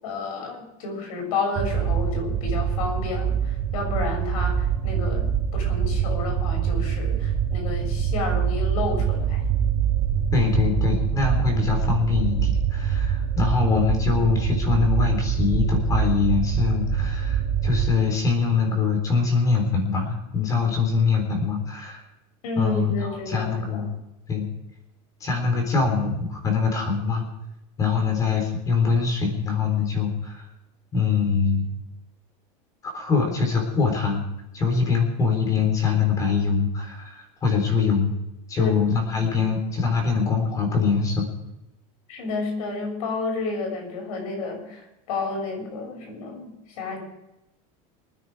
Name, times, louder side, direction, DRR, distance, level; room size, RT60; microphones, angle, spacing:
voice 1, 0.0-9.4 22.4-23.9 38.6-38.7 42.1-47.0, left 3 dB, 90° left, 2 dB, 6.6 m, -31 dB
sound 1, 1.6-17.9, right 8 dB, 30° right, 2.7 m, -24 dB
voice 2, 10.3-22.0 22.6-22.9 23.3-23.9 24.3-24.5 25.2-27.2 27.8-30.4 30.9-31.7 32.9-34.2 34.5-38.1 38.5-41.3, left 5 dB, 20° left, 3 dB, 3.9 m, -23 dB
25.0 x 9.7 x 4.9 m, 0.92 s
supercardioid pair, 170°, 18 cm